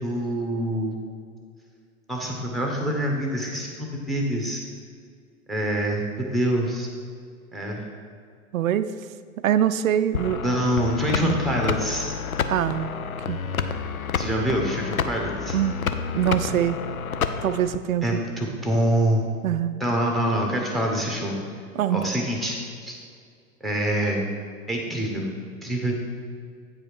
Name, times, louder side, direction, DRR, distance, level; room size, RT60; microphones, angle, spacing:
voice 1, 0.0-1.0 2.1-4.6 5.5-6.9 7.5-7.8 10.4-12.1 14.1-15.6 18.0-19.3 19.8-21.3 21.9-22.6 22.8-23.0 23.6-24.2 24.7-25.3 25.6-25.9, equal, ahead, 0 dB, 1.2 m, -25 dB
voice 2, 8.5-8.9 9.4-10.4 11.2-11.4 12.5-12.9 13.3-13.4 15.5-15.7 16.1-16.8 17.4-18.2 19.4-19.7 21.8-22.1, right 10 dB, 70° right, 12 dB, 0.5 m, -23 dB
sound 1, 10.1-17.8, left 6 dB, 80° left, 0.5 m, -29 dB
8.7 x 4.9 x 4.7 m, 2.2 s
figure-of-eight pair, 95°, 42 cm